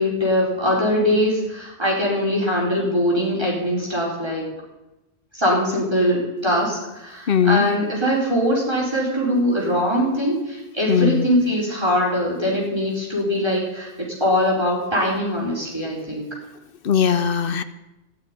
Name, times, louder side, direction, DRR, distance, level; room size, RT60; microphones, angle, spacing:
voice 1, 0.0-4.4 5.3-13.9 14.2-16.3, equal, 25° right, -4 dB, 4.7 m, -22 dB
voice 2, 7.3-7.7 10.9-11.3 16.8-17.6, left 7 dB, 60° left, 12 dB, 0.9 m, -19 dB
15.0 x 6.7 x 9.9 m, 0.99 s
omnidirectional pair, 1.1 m